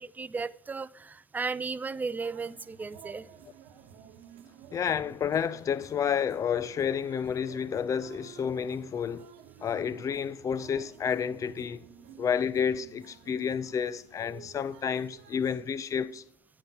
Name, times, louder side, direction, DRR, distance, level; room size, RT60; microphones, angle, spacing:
voice 1, 0.0-3.3, right 4 dB, 20° right, 0.4 m, -35 dB
sound 1, 2.3-15.6, right 8 dB, 70° right, 1.0 m, -52 dB
voice 2, 4.7-9.3 9.6-11.8 12.2-16.2, left 7 dB, 40° left, 0.5 m, -30 dB
9.1 x 6.6 x 4.1 m
hypercardioid pair, 65°, 9 cm